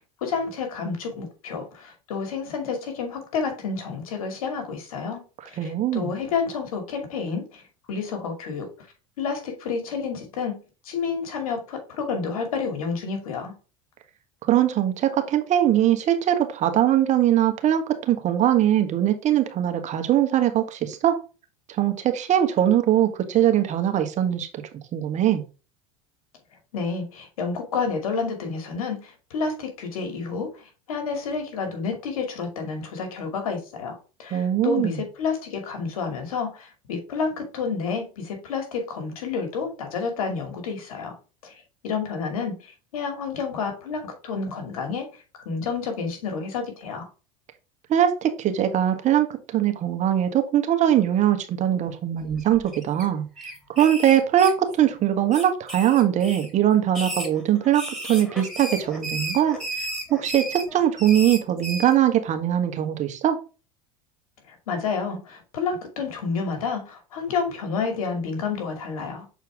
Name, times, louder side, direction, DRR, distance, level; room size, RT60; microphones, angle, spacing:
voice 1, 0.2-7.6 7.9-8.7 9.2-10.6 10.8-13.5 26.7-41.2 41.4-45.1 45.5-47.1 64.5-69.3, left 5 dB, 85° left, 4 dB, 2.5 m, -30 dB
voice 2, 5.6-6.1 14.4-21.2 21.7-24.6 24.9-25.4 34.3-35.0 47.9-49.3 49.5-53.3 53.8-63.4, right 11 dB, 40° right, 7 dB, 1.4 m, -21 dB
sound 1, 52.3-53.0 53.4-54.9 55.3-56.5 56.9-61.9, right 1 dB, 5° left, 3.0 m, -34 dB
7.2 x 4.5 x 3.5 m, 0.33 s
supercardioid pair, 100°, 18 cm